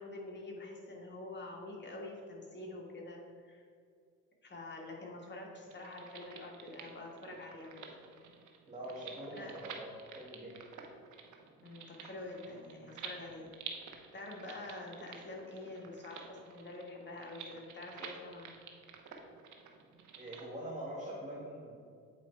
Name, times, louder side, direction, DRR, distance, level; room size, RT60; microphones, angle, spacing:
voice 1, 0.0-3.6 4.4-7.9 9.4-9.5 11.6-13.8 14.1-18.6, left 2 dB, 35° left, -1 dB, 1.7 m, -46 dB
sound 1, 5.7-20.4, right 7 dB, 75° right, 0.9 m, -50 dB
voice 2, 8.7-10.6 20.1-21.7, right 1 dB, 20° right, -8 dB, 1.7 m, -44 dB
8.2 x 4.3 x 4.5 m, 2.2 s
cardioid pair, 90°, 30 cm